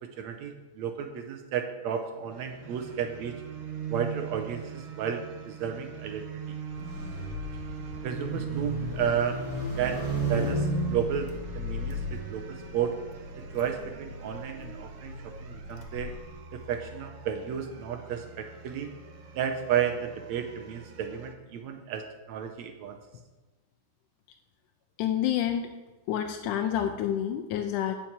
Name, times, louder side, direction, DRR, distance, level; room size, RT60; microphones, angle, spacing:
voice 1, 0.0-3.4 3.9-6.3 8.0-9.4 9.8-13.0 13.5-15.1 15.4-16.2 16.5-18.9 19.4-23.0, right 8 dB, 70° right, 6 dB, 1.9 m, -32 dB
sound 1, 2.3-21.3, right 8 dB, 90° right, 1.0 m, -41 dB
Car / Engine starting, 6.7-16.8, left 5 dB, 65° left, 2.4 m, -42 dB
sound 2, 6.8-12.3, right 1 dB, 5° right, 3.4 m, -34 dB
voice 2, 25.0-25.7 26.1-28.0, left 10 dB, 85° left, 5 dB, 2.1 m, -28 dB
10.0 x 5.9 x 8.7 m, 1.2 s
omnidirectional pair, 3.6 m